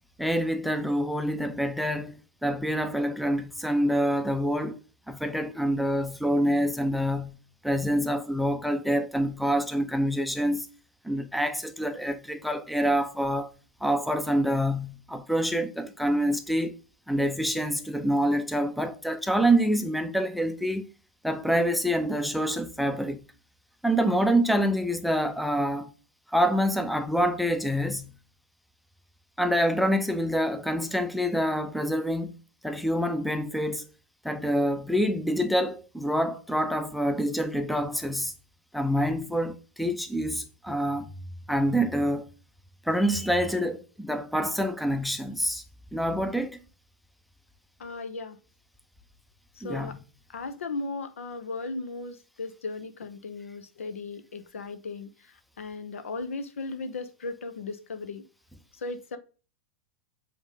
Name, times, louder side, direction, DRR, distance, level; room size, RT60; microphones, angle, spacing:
voice 1, 0.2-4.8 5.1-7.4 7.6-10.7 11.0-13.5 13.8-16.7 17.1-20.8 21.2-23.2 23.8-25.9 26.3-28.1 29.4-32.4 32.6-33.8 34.2-38.3 38.7-41.1 41.5-42.3 42.9-45.6 45.9-46.6 49.6-50.0, equal, ahead, 0.6 m, -26 dB
voice 2, 47.8-48.4 49.5-50.0 50.3-58.2 58.7-59.2, left 3 dB, 70° left, 0.8 m, -36 dB
8.0 x 3.7 x 3.7 m
figure-of-eight pair, 95°, 8 cm